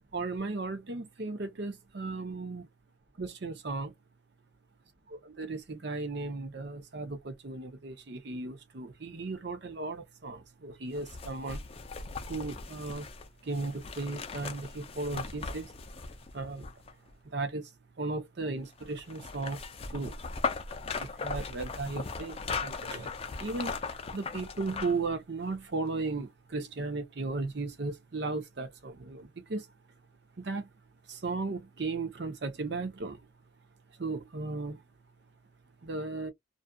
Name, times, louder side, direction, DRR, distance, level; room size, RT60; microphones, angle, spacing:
voice 1, 0.1-2.7 3.2-3.9 5.2-11.6 12.3-13.1 13.5-15.7 16.3-16.7 17.3-17.6 18.0-19.6 19.9-20.1 21.0-22.4 22.6-23.1 23.4-23.7 24.1-29.6 30.4-30.7 31.1-33.2 34.0-34.8 35.8-36.3, right 3 dB, 55° right, 0.6 m, -35 dB
sound 1, 10.9-17.1 18.8-25.1 25.5-25.6, left 4 dB, 30° left, 0.4 m, -38 dB
2.5 x 2.4 x 2.2 m
head